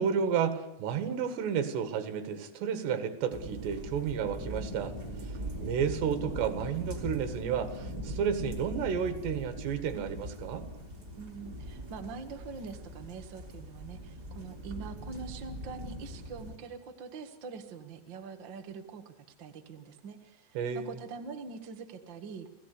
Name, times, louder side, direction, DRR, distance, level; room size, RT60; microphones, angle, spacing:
voice 1, 0.0-5.0 5.2-5.3 5.6-10.7 20.6-21.0, right 7 dB, 75° right, 9 dB, 4.0 m, -31 dB
sound 1, 3.3-16.6, equal, 25° right, 3.4 m, -41 dB
voice 2, 11.2-22.5, right 5 dB, 60° right, 6 dB, 1.2 m, -44 dB
30.0 x 17.5 x 8.4 m, 0.89 s
omnidirectional pair, 5.0 m